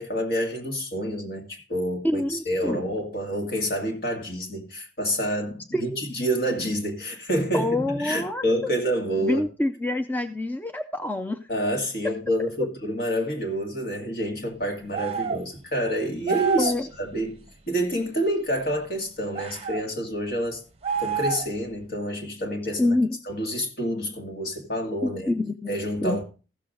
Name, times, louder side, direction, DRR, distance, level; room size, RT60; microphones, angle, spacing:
voice 1, 0.0-9.4 11.5-16.7 17.0-17.4 17.7-20.6 21.0-22.9 23.3-25.3 25.7-26.2, equal, 60° left, 2.1 m, -28 dB
voice 2, 2.0-2.9 5.7-6.0 7.5-8.4 9.2-11.5 12.6-12.7 16.6-16.9 22.8-23.2 25.0-26.2, left 1 dB, 10° left, 0.5 m, -27 dB
sound 1, 14.9-15.5 16.3-16.8 19.3-19.8 20.8-21.6, right 6 dB, 35° right, 0.7 m, -28 dB
15.0 x 6.8 x 3.8 m
head